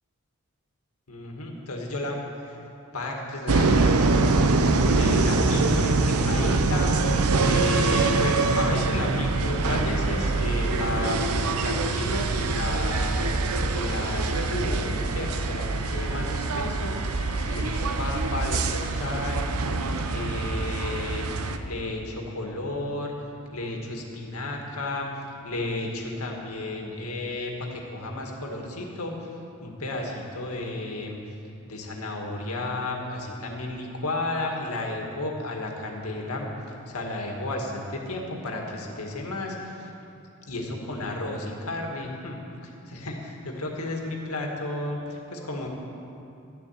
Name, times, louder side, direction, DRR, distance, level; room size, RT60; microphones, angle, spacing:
voice 1, 1.1-2.6 2.9-4.4 5.0-7.0 7.4-13.3 13.7-19.5 20.1-21.3 21.7-23.1 23.5-25.1 25.4-29.3 29.6-31.2 31.7-39.9 40.5-42.4 42.9-45.7, left 2 dB, 80° left, 0 dB, 2.0 m, -32 dB
sound 1, 3.5-21.6, right 3 dB, 80° right, 0.7 m, -24 dB
13.0 x 7.4 x 9.1 m, 2.7 s
head